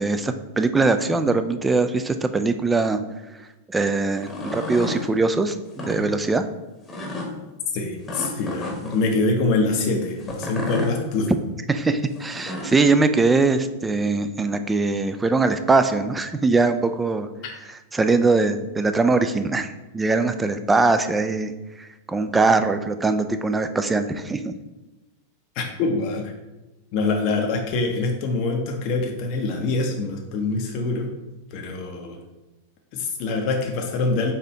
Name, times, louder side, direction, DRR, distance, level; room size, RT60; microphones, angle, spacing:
voice 1, 0.0-3.0 3.7-6.4 11.7-17.3 17.9-21.5 21.8-24.5, right 3 dB, 15° right, 9 dB, 0.3 m, -21 dB
sound 1, 4.1-5.0 5.7-6.0 6.9-7.3 8.1-9.0 10.2-10.9 12.1-12.8, left 2 dB, 20° left, 1.0 m, -31 dB
voice 2, 7.7-11.3 25.6-26.3 26.9-31.1 31.5-32.2 32.9-34.3, left 3 dB, 50° left, 2 dB, 0.6 m, -24 dB
4.2 x 2.6 x 4.4 m, 1.1 s
hypercardioid pair, 100°, 0 cm